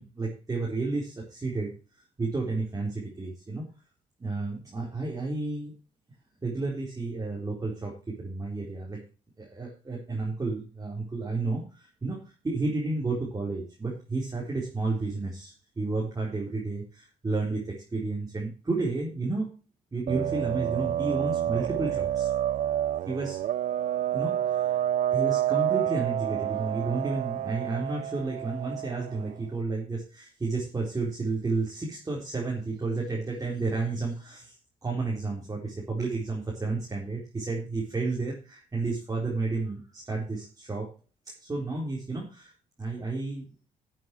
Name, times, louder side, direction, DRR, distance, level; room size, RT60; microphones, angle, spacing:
voice 1, 0.0-1.7 2.2-3.6 4.2-5.7 6.4-9.0 9.4-12.2 12.4-19.5 19.9-22.3 23.1-23.4 24.1-24.8 25.1-34.6 34.8-40.9 41.4-42.5 42.8-43.5, right 3 dB, 25° right, -3 dB, 4.0 m, -31 dB
sound 1, 20.1-29.3, right 11 dB, 55° right, 0.4 m, -29 dB
12.5 x 7.6 x 4.7 m, 0.34 s
cardioid pair, 90°, 15 cm